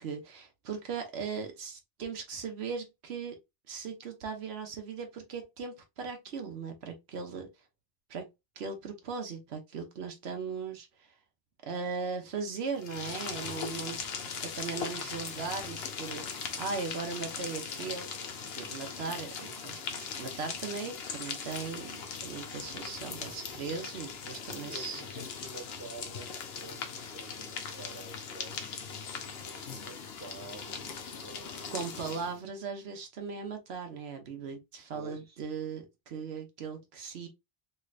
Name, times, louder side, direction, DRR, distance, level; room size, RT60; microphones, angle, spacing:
voice 1, 0.0-3.4 3.7-7.5 8.1-8.3 8.6-11.1 11.6-18.1 18.5-25.0 31.7-37.3, right 5 dB, 85° right, 1.1 m, -38 dB
sound 1, 12.8-32.4, left 6 dB, 75° left, 0.9 m, -40 dB
voice 2, 24.6-28.7 29.4-30.9 31.2-31.9 34.9-35.4, right 3 dB, 15° right, 1.0 m, -49 dB
3.2 x 3.2 x 2.4 m
omnidirectional pair, 1.1 m